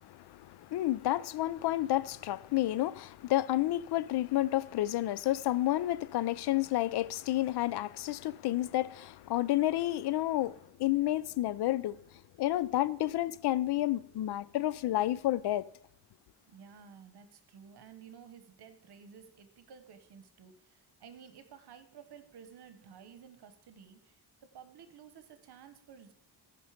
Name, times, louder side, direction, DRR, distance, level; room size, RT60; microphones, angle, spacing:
voice 1, 0.0-12.0 12.4-15.7, left 15 dB, 70° left, 0.5 m, -30 dB
voice 2, 16.5-26.1, right 7 dB, 70° right, 1.2 m, -54 dB
14.5 x 5.4 x 5.0 m
wide cardioid pair, 135°, 41 cm